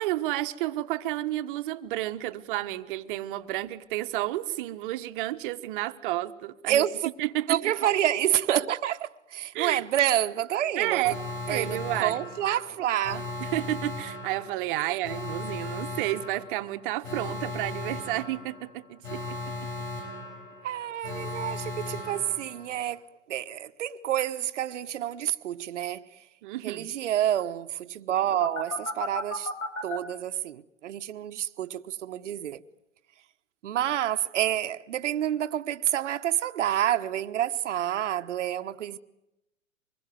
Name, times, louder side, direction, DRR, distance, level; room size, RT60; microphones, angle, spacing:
voice 1, 0.0-6.9 7.2-7.7 9.5-9.8 10.8-11.2 11.5-12.2 13.4-19.7 26.4-26.9, right 16 dB, 40° right, 1.5 m, -31 dB
voice 2, 6.7-7.1 7.5-11.1 11.5-13.2 14.8-15.0 20.6-23.0 23.3-26.2 26.6-29.5 29.8-32.6 33.6-39.0, right 11 dB, 65° right, 1.3 m, -28 dB
Alarm, 11.0-22.9 28.4-30.0, left 2 dB, 85° left, 6.1 m, -37 dB
25.5 x 21.0 x 9.4 m
hypercardioid pair, 130°, 39 cm